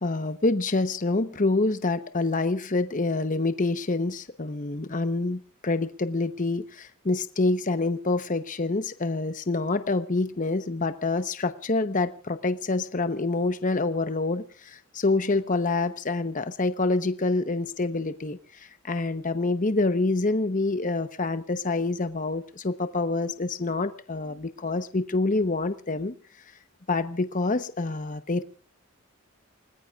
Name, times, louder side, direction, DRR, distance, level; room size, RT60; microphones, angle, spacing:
voice 1, 0.0-26.1 26.9-28.4, left 3 dB, 35° left, 10 dB, 0.9 m, -27 dB
29.0 x 20.0 x 2.4 m, 0.39 s
head